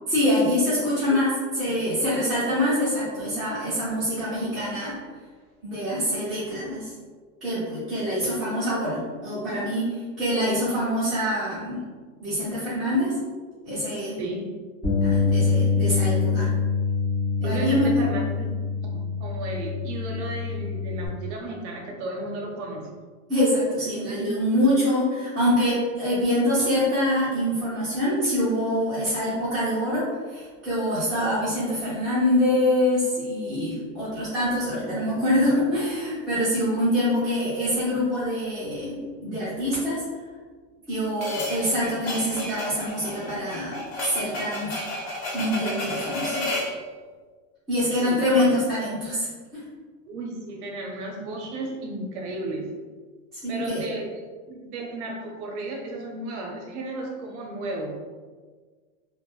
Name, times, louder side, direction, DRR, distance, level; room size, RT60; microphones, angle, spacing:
voice 1, 0.1-1.3 1.6-5.0 5.6-6.9 7.4-11.8 12.2-13.2 13.6-14.2 15.0-16.5 17.4-17.9 23.3-40.0 40.9-43.8 44.1-44.8 45.3-46.5 47.7-49.6 53.3-53.8, left 1 dB, ahead, -16 dB, 0.5 m, -25 dB
voice 2, 14.2-14.5 17.4-18.5 18.9-22.9 48.0-48.5 50.1-52.8 53.5-58.0, right 2 dB, 60° right, 0 dB, 0.5 m, -33 dB
Bass guitar, 14.8-21.1, left 4 dB, 20° left, 1.0 m, -25 dB
sound 1, 41.2-46.8, left 1 dB, 75° left, 0.9 m, -32 dB
2.9 x 2.1 x 2.3 m, 1.5 s
supercardioid pair, 165°, 39 cm